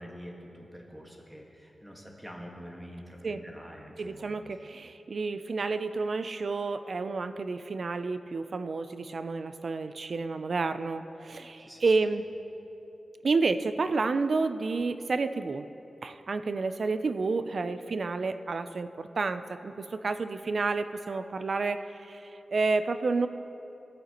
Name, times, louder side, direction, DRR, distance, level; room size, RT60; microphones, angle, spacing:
voice 1, 0.0-4.3 11.6-11.9, equal, 10° right, -1 dB, 1.4 m, -46 dB
voice 2, 4.0-12.2 13.2-15.7 16.0-23.3, right 3 dB, 60° right, 11 dB, 0.4 m, -30 dB
16.0 x 9.2 x 2.9 m, 3.0 s
wide cardioid pair, 90°, 0 cm